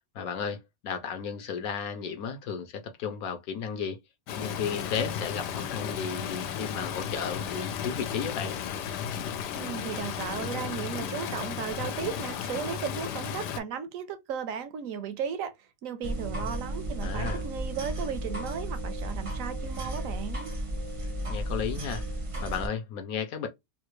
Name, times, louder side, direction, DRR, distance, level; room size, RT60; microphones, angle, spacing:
voice 1, 0.1-4.0 4.4-8.6 17.0-17.4 21.3-22.0 22.4-23.5, left 6 dB, 70° left, 1.0 m, -34 dB
Stream, 4.3-13.6, left 8 dB, 85° left, 1.2 m, -34 dB
voice 2, 9.5-20.5, right 7 dB, 70° right, 0.8 m, -35 dB
sound 1, 16.0-22.7, right 1 dB, 40° right, 0.4 m, -34 dB
3.3 x 2.4 x 3.0 m
omnidirectional pair, 1.8 m